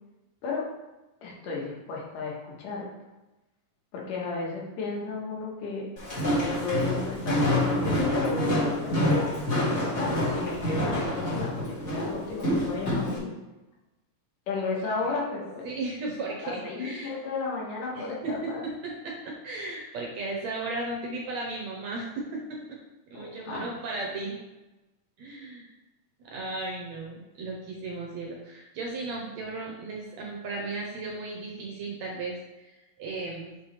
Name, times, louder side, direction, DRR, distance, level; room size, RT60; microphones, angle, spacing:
voice 1, 1.2-2.8 3.9-5.9 6.4-9.4 9.9-13.3 14.5-15.7 16.4-18.6 23.1-23.7, left 3 dB, 75° left, -3 dB, 2.8 m, -33 dB
Walk footsteps, 6.0-13.2, left 1 dB, 30° left, 1.7 m, -27 dB
voice 2, 14.7-15.2 15.6-17.1 18.0-22.8 23.1-24.4 25.2-25.7 26.2-33.5, right 2 dB, 70° right, -2 dB, 1.8 m, -35 dB
6.2 x 5.7 x 3.3 m, 1.1 s
omnidirectional pair, 3.8 m